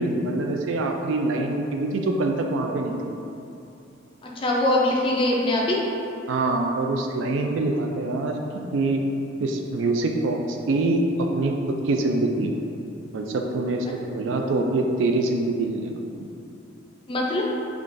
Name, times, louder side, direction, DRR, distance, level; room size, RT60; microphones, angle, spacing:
voice 1, 0.0-3.0 6.3-9.0 9.4-11.6 11.8-12.5 13.1-16.0, right 2 dB, 70° right, 3 dB, 0.3 m, -25 dB
voice 2, 4.4-5.8 17.1-17.4, left 1 dB, 25° left, -2 dB, 0.4 m, -22 dB
3.7 x 2.4 x 2.5 m, 2.7 s
head